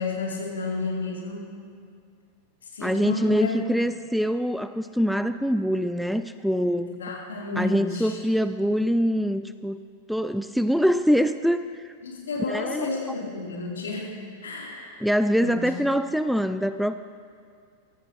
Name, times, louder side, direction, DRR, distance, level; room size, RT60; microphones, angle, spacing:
voice 1, 0.0-1.4 2.6-3.6 7.0-8.2 12.0-15.0 15.4-15.7, left 3 dB, 65° left, -4 dB, 3.4 m, -32 dB
voice 2, 2.8-7.0 7.6-9.8 10.1-11.9 12.5-12.9 15.0-16.9, equal, ahead, 11 dB, 0.3 m, -24 dB
23.0 x 14.5 x 3.0 m, 2.2 s
figure-of-eight pair, 90°, 0 cm